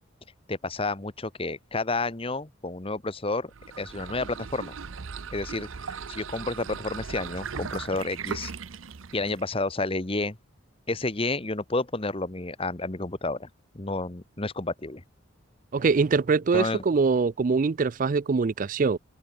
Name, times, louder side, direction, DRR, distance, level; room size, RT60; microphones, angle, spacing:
voice 1, 0.5-3.5 3.8-4.8 5.3-5.7 6.1-8.5 9.1-10.4 10.9-13.5 13.7-15.0 16.5-16.8, left 2 dB, 30° left, 1.2 m, -30 dB
sound 1, 3.5-9.5, right 6 dB, 80° right, 0.7 m, -38 dB
voice 2, 15.7-19.0, right 4 dB, 40° right, 0.4 m, -23 dB
open air
head